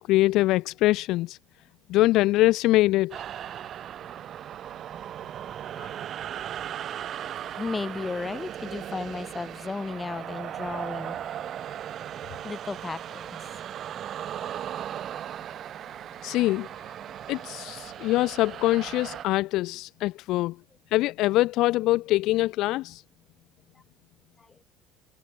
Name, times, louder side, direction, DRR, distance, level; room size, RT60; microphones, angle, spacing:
voice 1, 0.0-1.4 1.9-3.2 16.2-16.7 17.3-20.5 20.9-23.0, left 17 dB, 60° left, 0.5 m, -23 dB
sound 1, 3.1-19.3, right 10 dB, 40° right, 1.0 m, -37 dB
voice 2, 7.5-11.5 12.4-13.4 24.4-24.6, left 4 dB, 15° left, 1.4 m, -35 dB
cardioid pair, 160°, 0 cm